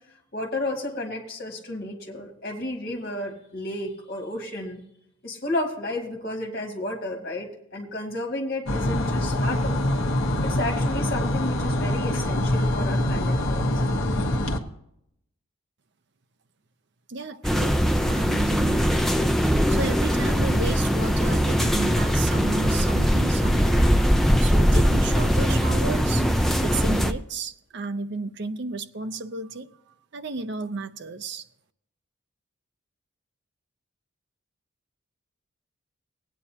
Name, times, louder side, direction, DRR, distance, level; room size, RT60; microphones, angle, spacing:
voice 1, 0.3-4.8 5.2-9.8 10.4-13.8, left 1 dB, 45° left, 2.4 m, -32 dB
sound 1, 8.7-14.6, left 1 dB, 70° left, 1.2 m, -24 dB
voice 2, 17.1-18.9 19.7-23.9 24.4-26.3 26.6-29.7 30.1-31.5, right 3 dB, 50° right, 0.7 m, -33 dB
sound 2, 17.4-27.1, equal, ahead, 0.4 m, -21 dB
18.5 x 9.3 x 2.9 m
head